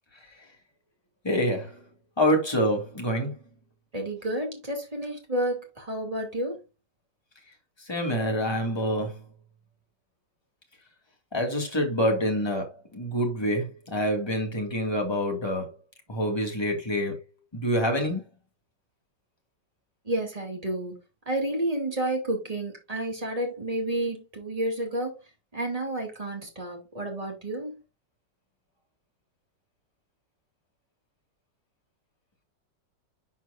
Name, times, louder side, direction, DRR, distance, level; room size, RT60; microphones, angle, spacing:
voice 1, 1.2-1.8 2.2-3.3 7.8-9.2 11.3-15.7 16.1-17.2 17.5-18.2, equal, 15° left, 2.1 m, -26 dB
voice 2, 3.9-6.6 20.1-21.0 21.3-25.2 25.5-27.7, right 1 dB, 20° right, 2.7 m, -30 dB
11.5 x 4.5 x 2.6 m
omnidirectional pair, 2.0 m